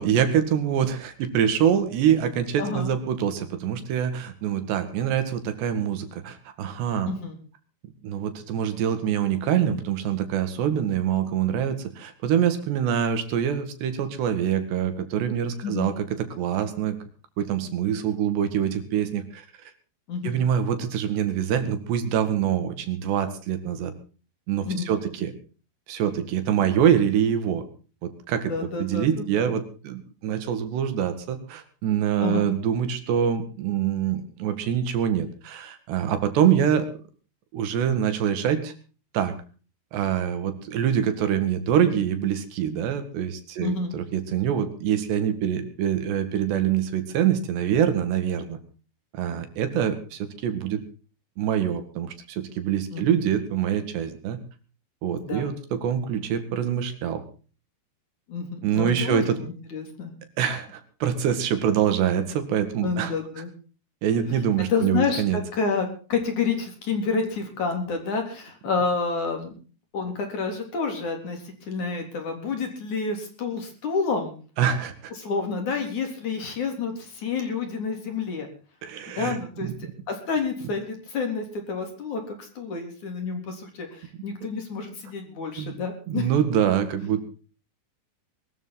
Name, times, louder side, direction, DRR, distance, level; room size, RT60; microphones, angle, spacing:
voice 1, 0.0-7.1 8.0-17.0 17.4-19.5 20.2-23.9 24.5-25.3 25.9-27.6 28.0-28.5 28.8-36.9 37.5-38.7 39.1-39.3 39.9-48.6 49.1-50.8 51.4-54.4 55.0-57.2 58.6-59.4 60.4-63.1 64.0-65.4 74.6-75.1 78.8-79.9 85.6-85.8 86.1-87.2, right 9 dB, 75° right, 9 dB, 4.2 m, -25 dB
voice 2, 2.6-2.9 7.0-7.4 15.6-15.9 20.1-20.4 24.6-24.9 28.5-29.1 29.4-29.5 32.2-32.5 43.6-44.0 52.9-53.2 55.2-55.5 58.3-60.1 62.8-63.5 64.7-69.6 69.9-74.3 75.2-78.5 79.2-86.3, left 5 dB, 45° left, 5 dB, 4.8 m, -29 dB
21.5 x 13.5 x 4.1 m, 0.37 s
omnidirectional pair, 4.9 m